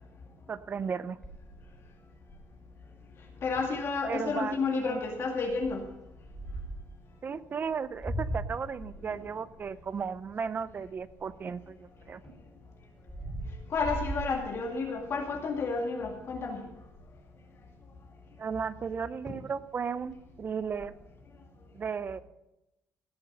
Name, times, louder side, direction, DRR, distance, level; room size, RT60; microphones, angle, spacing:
voice 1, 0.5-1.2 4.1-5.0 7.2-12.2 18.4-21.0 21.7-22.2, right 6 dB, 35° right, 16 dB, 0.5 m, -35 dB
sound 1, 1.2-2.7 3.2-3.3 3.6-3.8 4.3-4.6 5.5-6.9 7.6-11.5 12.0-15.0 15.5-15.8 16.0-16.1 16.4-17.2 18.8-18.9 19.3-19.6 19.9-20.9, right 1 dB, 5° right, 4.4 m, -40 dB
voice 2, 3.4-5.8 13.7-16.6, left 4 dB, 45° left, 1 dB, 2.0 m, -31 dB
17.5 x 7.0 x 5.4 m, 0.94 s
cardioid pair, 130°, 6 cm